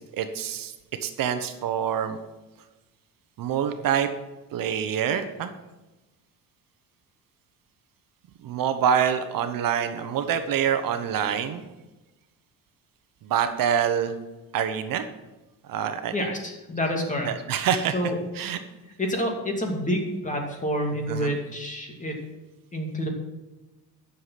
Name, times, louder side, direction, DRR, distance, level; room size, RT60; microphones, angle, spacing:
voice 1, 0.1-0.7 1.0-2.2 3.4-4.1 4.5-5.5 8.4-11.6 13.2-14.1 14.5-15.0 15.7-16.3 17.2-18.6 21.1-21.4, right 8 dB, 60° right, 9 dB, 1.1 m, -26 dB
voice 2, 16.1-17.3 17.9-18.2 19.0-22.3 22.7-23.1, equal, 20° left, 2 dB, 2.4 m, -28 dB
11.0 x 7.1 x 5.8 m, 1.1 s
cardioid pair, 125°, 37 cm